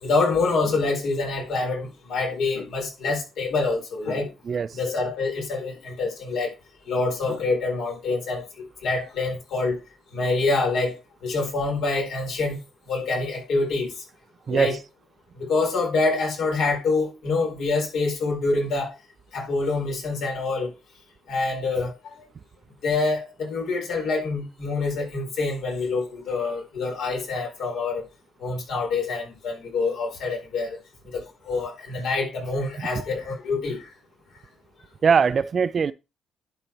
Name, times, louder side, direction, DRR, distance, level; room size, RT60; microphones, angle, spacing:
voice 1, 0.0-4.3 4.7-6.5 6.9-9.8 10.1-12.6 12.9-13.9 14.5-14.7 15.3-18.9 19.3-20.7 21.3-22.1 22.8-28.0 28.4-30.8 31.1-33.9, left 3 dB, 70° left, 4.2 m, -26 dB
voice 2, 4.5-4.8 14.5-14.8 32.8-32.9 35.0-35.9, right 6 dB, 40° right, 0.4 m, -21 dB
11.0 x 4.2 x 4.6 m
cardioid pair, 120°, 0 cm